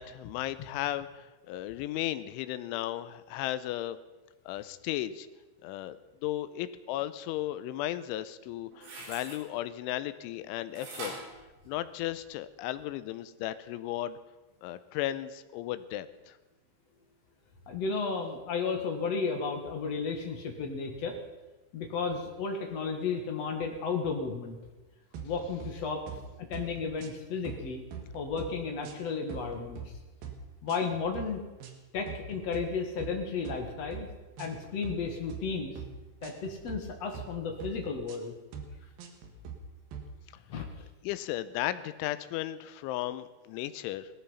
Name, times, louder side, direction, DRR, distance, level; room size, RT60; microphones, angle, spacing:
voice 1, 0.0-4.0 4.5-5.3 5.6-6.0 6.2-11.1 11.7-14.2 14.6-16.3 41.0-44.1, left 14 dB, 90° left, 13 dB, 3.2 m, -35 dB
sound 1, 8.5-9.4 10.8-12.3 12.8-12.9, right 2 dB, 85° right, 6.6 m, -43 dB
voice 2, 17.7-21.2 21.7-24.6 25.2-26.0 26.4-27.8 28.1-29.8 30.6-31.4 31.9-34.1 34.4-35.8 36.2-38.4 40.5-40.7, left 5 dB, 60° left, 3 dB, 1.8 m, -33 dB
sound 2, 25.1-25.7 26.1-26.3 26.5-27.2 27.4-28.5 28.8-29.9 30.2-30.4 30.7-31.3 31.6-31.8 32.1-32.6 33.0-33.2 33.4-34.0 34.4-34.5 34.8-35.4 35.8-35.9 36.2-36.8 37.1-37.3 37.6-38.2 38.5-38.7 39.0-39.6 39.9-40.1, right 7 dB, 60° right, 3.0 m, -43 dB
18.0 x 13.5 x 5.6 m, 1.1 s
omnidirectional pair, 5.4 m